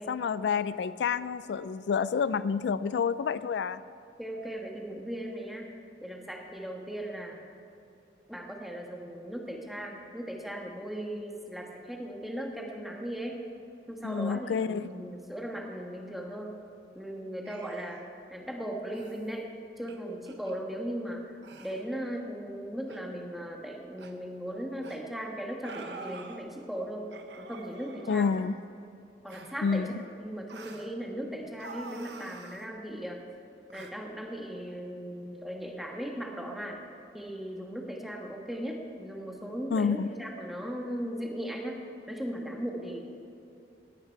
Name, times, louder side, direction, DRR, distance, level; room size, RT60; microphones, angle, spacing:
voice 1, 0.1-3.8 14.0-14.9 28.1-28.6 29.6-29.9 39.7-40.1, left 6 dB, 80° left, 15 dB, 0.3 m, -29 dB
voice 2, 4.2-5.7 6.0-7.4 8.3-13.4 13.9-16.6 16.9-18.0 18.3-19.5 19.8-21.2 21.6-27.1 27.4-28.3 29.2-29.8 30.2-33.2 33.7-36.8 37.1-43.0, equal, ahead, 0 dB, 1.4 m, -38 dB
sound 1, 17.4-18.1 18.9-19.2 19.9-20.0 20.3-20.5 21.4-21.9 22.9-23.0 24.0-24.1 24.8-25.0 25.6-26.4 27.1-28.6 29.3-29.6 30.5-30.9 31.6-32.6 33.7-33.9, right 4 dB, 80° right, 1.0 m, -47 dB
19.0 x 9.1 x 4.6 m, 2.7 s
head